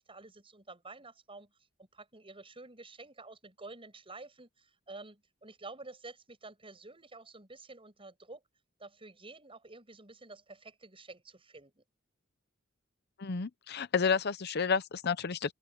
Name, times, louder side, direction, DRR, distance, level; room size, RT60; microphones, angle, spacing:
voice 1, 0.0-1.5 1.8-8.4 8.8-11.8, right 3 dB, 25° right, 7.7 m, -50 dB
voice 2, 13.2-15.5, left 5 dB, 55° left, 0.7 m, -30 dB
open air
head